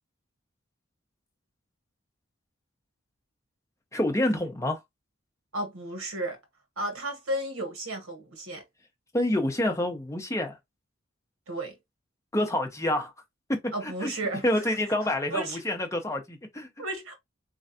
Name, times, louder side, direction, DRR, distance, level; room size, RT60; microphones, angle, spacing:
voice 1, 3.9-4.8 9.1-10.6 12.3-13.1 13.8-14.1 14.4-16.7, left 1 dB, 15° left, 0.7 m, -27 dB
voice 2, 5.5-6.4 6.8-8.6 11.5-11.8 13.7-14.7 15.3-15.6 16.8-17.2, right 1 dB, 85° right, 1.4 m, -33 dB
3.8 x 3.3 x 2.7 m
head